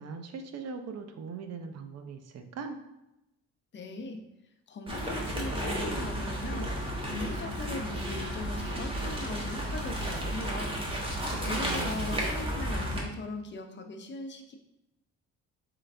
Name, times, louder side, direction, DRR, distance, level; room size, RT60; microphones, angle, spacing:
voice 1, 0.0-2.8 11.3-12.2, right 5 dB, 55° right, 7 dB, 0.6 m, -40 dB
voice 2, 3.7-4.2 4.7-6.7 7.0-10.8 11.4-14.6, left 3 dB, 40° left, 5 dB, 0.6 m, -39 dB
sound 1, 4.9-13.0, right 1 dB, 20° right, 1.1 m, -33 dB
3.9 x 3.2 x 3.3 m, 0.89 s
cardioid pair, 90°, 30 cm